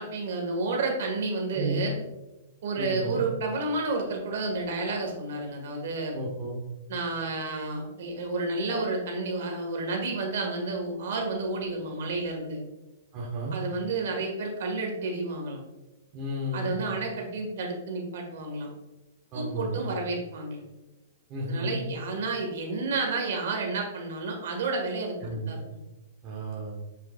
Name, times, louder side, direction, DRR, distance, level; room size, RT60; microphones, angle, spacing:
voice 1, 0.0-2.0 2.6-6.1 6.9-12.6 13.5-15.6 16.5-18.7 19.3-20.6 21.4-25.8, right 3 dB, 60° right, 2 dB, 1.7 m, -31 dB
voice 2, 2.8-3.2 6.1-6.6 13.1-13.5 16.1-16.8 19.3-19.9 21.3-21.8 25.2-25.6 26.2-26.8, right 1 dB, 25° right, -3 dB, 1.2 m, -33 dB
7.3 x 5.5 x 2.4 m, 1.0 s
hypercardioid pair, 160°, 0 cm